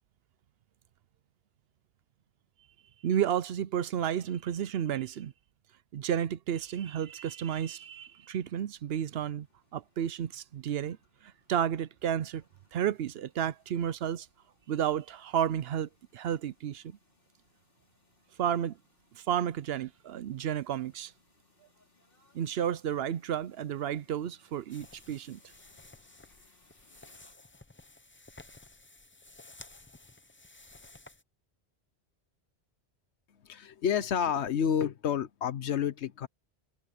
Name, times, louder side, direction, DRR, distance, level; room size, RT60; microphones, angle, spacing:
voice 1, 3.0-5.3 5.9-9.5 9.7-11.0 11.2-12.4 12.7-14.3 14.7-17.0 18.4-18.8 19.2-21.1 22.3-25.4, right 9 dB, 65° right, 0.8 m, -32 dB
sound 1, 7.5-27.3, left 3 dB, 55° left, 4.1 m, -69 dB
sound 2, 24.7-31.2, left 2 dB, 15° left, 0.4 m, -54 dB
voice 2, 33.4-36.3, left 8 dB, 80° left, 1.1 m, -29 dB
omnidirectional pair, 1.1 m